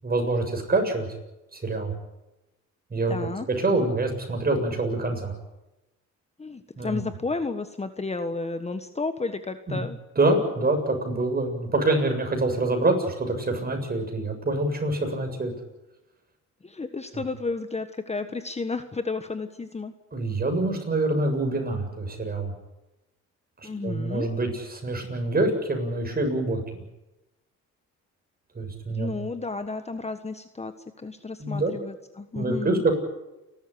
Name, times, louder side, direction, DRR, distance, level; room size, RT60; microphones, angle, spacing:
voice 1, 0.0-1.1 1.5-1.9 2.9-3.2 3.6-5.3 6.8-7.0 9.7-9.8 10.2-15.5 20.1-22.5 23.8-26.8 28.6-29.1 31.4-31.7 32.3-32.9, right 2 dB, 30° right, 4 dB, 7.3 m, -25 dB
voice 2, 3.1-3.5 6.4-10.0 16.6-19.9 23.6-24.3 28.9-32.8, left 3 dB, 20° left, 9 dB, 1.4 m, -32 dB
29.0 x 13.0 x 10.0 m, 0.98 s
cardioid pair, 90°, 30 cm